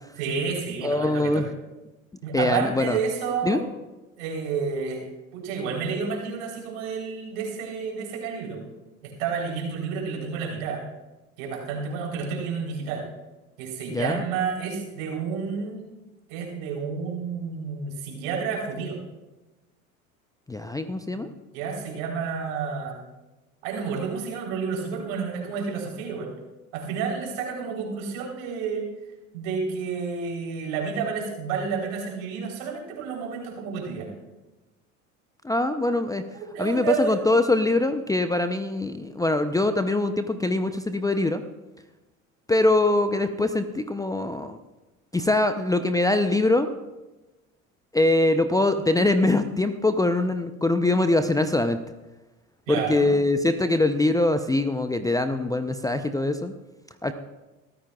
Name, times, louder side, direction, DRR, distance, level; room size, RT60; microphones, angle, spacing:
voice 1, 0.2-1.5 2.2-3.6 4.2-5.0 5.3-8.7 9.0-10.8 11.4-13.0 13.6-15.9 16.3-19.0 21.5-23.0 23.6-26.3 26.7-28.9 29.3-34.1 36.3-37.2 52.7-53.1, right 5 dB, 65° right, -1 dB, 3.9 m, -30 dB
voice 2, 0.8-1.5 2.3-3.0 3.4-3.6 13.9-14.2 20.5-21.3 35.4-36.2 36.6-41.4 42.5-44.6 45.1-46.7 47.9-51.8 52.7-56.5 57.0-57.1, left 2 dB, 10° left, 9 dB, 0.6 m, -23 dB
22.5 x 14.0 x 2.4 m, 1.1 s
hypercardioid pair, 75°, 43 cm